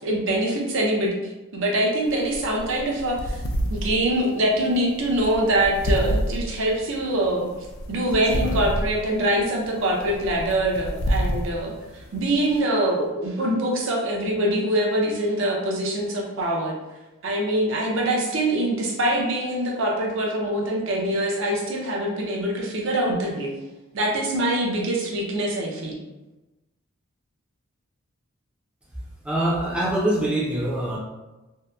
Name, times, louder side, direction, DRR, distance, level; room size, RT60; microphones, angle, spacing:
voice 1, 0.0-3.4 3.7-7.5 7.9-16.8 17.2-23.5 23.9-26.0, right 1 dB, 60° right, -1 dB, 0.5 m, -24 dB
sound 1, 2.1-12.6, equal, 70° left, 0.3 m, -29 dB
voice 2, 8.3-8.7 29.2-31.0, right 1 dB, 5° right, -7 dB, 0.5 m, -24 dB
2.7 x 2.1 x 2.3 m, 1.1 s
head